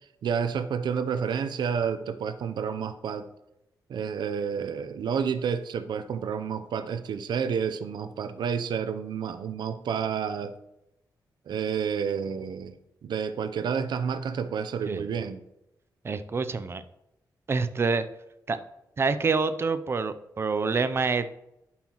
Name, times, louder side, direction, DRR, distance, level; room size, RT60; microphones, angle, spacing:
voice 1, 0.2-3.3 3.9-10.5 11.5-12.7 13.0-15.4, right 7 dB, 80° right, 11 dB, 0.6 m, -30 dB
voice 2, 16.0-16.8 17.5-18.1 18.5-18.6 19.0-21.3, right 4 dB, 35° right, 12 dB, 0.4 m, -27 dB
11.5 x 5.6 x 3.0 m, 0.87 s
wide cardioid pair, 140°, 7 cm